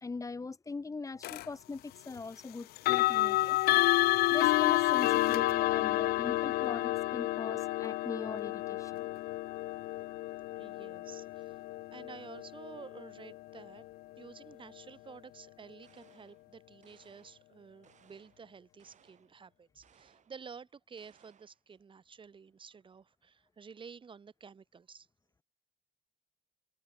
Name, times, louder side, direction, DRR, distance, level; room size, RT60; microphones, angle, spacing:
voice 1, 0.0-3.6 4.3-9.1, left 4 dB, 20° left, 1.4 m, -41 dB
sound 1, 1.2-1.5 2.8-13.6, left 17 dB, 70° left, 0.4 m, -30 dB
voice 2, 10.5-11.6 11.9-13.8 14.2-25.1, right 6 dB, 30° right, 1.5 m, -51 dB
sound 2, 15.8-16.4 16.8-17.5 17.8-18.5 18.8-19.3 19.8-20.4 21.0-21.6, right 8 dB, 45° right, 2.7 m, -66 dB
cardioid pair, 110°, 17 cm